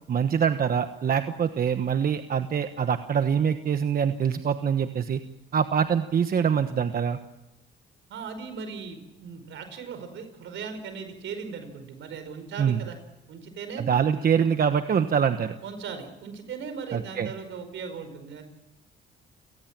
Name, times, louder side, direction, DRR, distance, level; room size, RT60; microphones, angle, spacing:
voice 1, 0.1-5.2 5.5-7.2 12.6-12.8 13.8-15.5 16.9-17.3, right 7 dB, 50° right, 9 dB, 1.2 m, -24 dB
voice 2, 8.1-13.0 13.3-13.8 15.6-18.4, right 5 dB, 75° right, 8 dB, 5.1 m, -38 dB
29.0 x 18.5 x 7.5 m, 0.95 s
cardioid pair, 90°, 20 cm